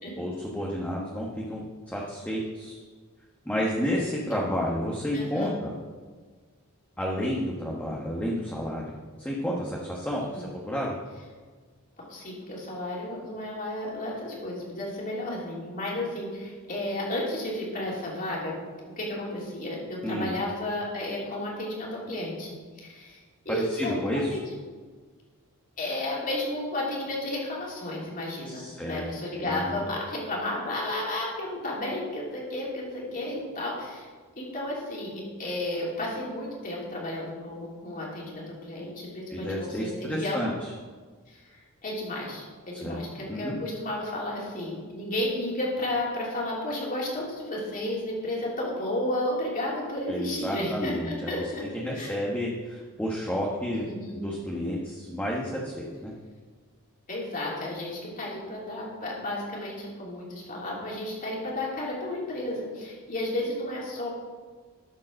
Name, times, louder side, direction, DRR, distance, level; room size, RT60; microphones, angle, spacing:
voice 1, 0.2-2.8 3.4-5.7 7.0-10.9 20.0-20.3 23.5-24.3 28.5-29.1 29.4-29.9 39.3-40.7 42.7-43.0 43.3-43.6 50.1-53.8 54.1-56.1, equal, 5° left, -4 dB, 1.2 m, -31 dB
voice 2, 5.1-5.5 10.3-10.5 12.1-18.6 19.0-22.5 22.8-24.4 25.8-34.1 34.4-40.5 41.3-51.6 51.9-52.1 53.7-54.2 57.1-64.1, left 1 dB, 40° left, -4 dB, 3.3 m, -32 dB
13.0 x 5.4 x 6.3 m, 1.5 s
head